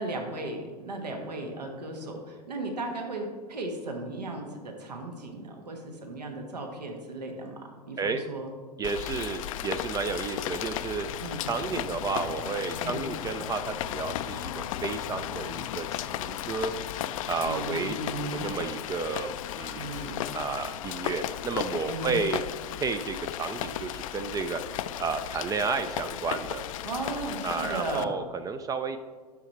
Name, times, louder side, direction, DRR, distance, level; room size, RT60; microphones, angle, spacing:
voice 1, 0.0-8.5 11.2-11.4 12.8-13.1 17.4-18.5 19.7-20.2 21.9-22.3 26.8-28.1, right 2 dB, 80° right, 3 dB, 1.5 m, -36 dB
Rain, 8.8-28.0, left 12 dB, 55° left, 0.5 m, -35 dB
voice 2, 8.8-11.1 11.4-16.7 17.3-22.4 22.8-24.6 25.0-26.6 27.4-29.0, right 4 dB, 15° right, 9 dB, 0.4 m, -32 dB
10.0 x 6.4 x 4.3 m, 1.5 s
figure-of-eight pair, 95°, 21 cm